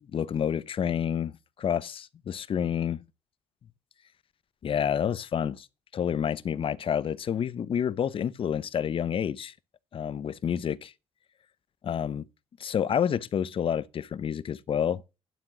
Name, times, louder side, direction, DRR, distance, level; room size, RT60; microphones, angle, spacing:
voice 1, 0.1-1.3 1.6-3.0 4.6-5.7 5.9-9.5 9.9-10.9 11.8-12.2 12.6-15.0, left 8 dB, 55° left, 0.8 m, -29 dB
11.5 x 7.7 x 6.1 m
cardioid pair, 75°, 11 cm